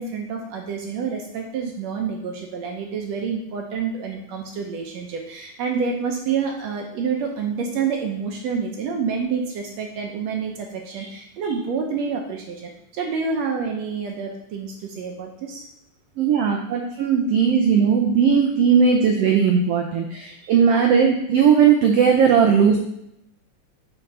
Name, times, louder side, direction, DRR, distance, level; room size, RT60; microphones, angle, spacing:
voice 1, 0.0-15.6 20.3-20.5, right 5 dB, 75° right, 2 dB, 1.7 m, -28 dB
voice 2, 16.2-22.8, right 6 dB, 90° right, 2 dB, 1.3 m, -17 dB
6.9 x 3.7 x 5.4 m, 0.78 s
omnidirectional pair, 3.6 m